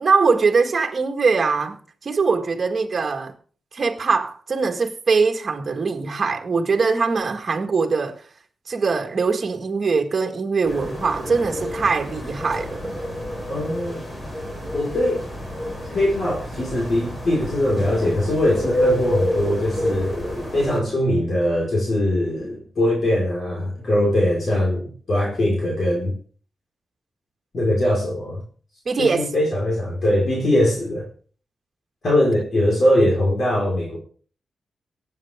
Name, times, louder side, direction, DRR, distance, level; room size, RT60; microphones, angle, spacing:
voice 1, 0.0-3.3 3.7-8.2 8.7-12.9 28.9-29.3, right 4 dB, 40° right, 1.8 m, -22 dB
sound 1, 10.6-20.8, equal, 25° left, 4.6 m, -28 dB
voice 2, 13.5-14.0 14.7-15.3 15.9-20.1 20.5-26.1 27.5-28.4 29.0-31.0 32.0-34.0, left 1 dB, 50° left, 4.7 m, -21 dB
23.5 x 9.2 x 3.6 m
wide cardioid pair, 150°, 0 cm